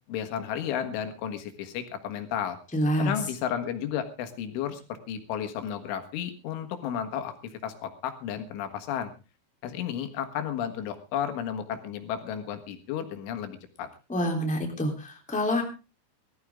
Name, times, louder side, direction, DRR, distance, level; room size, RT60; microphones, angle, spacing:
voice 1, 0.1-2.6 3.0-9.1 9.6-13.9, left 9 dB, 90° left, 8 dB, 4.1 m, -33 dB
voice 2, 2.7-3.2 14.1-15.6, equal, ahead, 2 dB, 2.3 m, -27 dB
20.0 x 13.5 x 3.6 m, 0.31 s
omnidirectional pair, 5.3 m